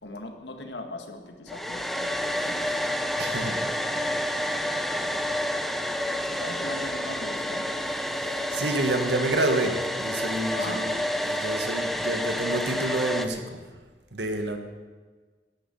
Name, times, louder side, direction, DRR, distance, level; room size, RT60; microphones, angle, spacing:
voice 1, 0.0-2.7 3.4-3.8 4.8-5.1 6.0-7.7 10.5-10.9, left 2 dB, 80° left, 5 dB, 1.8 m, -40 dB
Domestic sounds home sounds, 1.5-13.3, left 1 dB, ahead, 0.7 m, -29 dB
sound 1, 2.1-13.5, equal, 35° right, 4.5 m, -47 dB
voice 2, 3.2-3.6 8.1-13.6 14.1-14.6, right 2 dB, 75° right, 6 dB, 1.7 m, -29 dB
11.5 x 10.5 x 8.1 m, 1.4 s
head